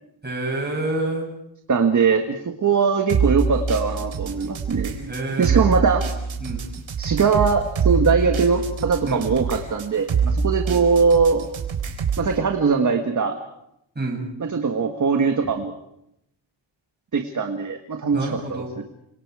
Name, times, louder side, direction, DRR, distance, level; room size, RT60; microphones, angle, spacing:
voice 1, 0.2-1.3 5.1-5.6 6.4-6.6 9.0-9.2 14.0-14.3 18.1-18.7, right 2 dB, 20° right, -1 dB, 7.4 m, -27 dB
voice 2, 1.7-6.0 7.0-11.5 12.2-13.4 14.4-15.7 17.1-18.8, right 5 dB, 40° right, 5 dB, 1.6 m, -21 dB
sound 1, 3.1-12.3, right 5 dB, 70° right, 4.2 m, -25 dB
29.0 x 26.0 x 4.9 m, 0.81 s
wide cardioid pair, 160°, 48 cm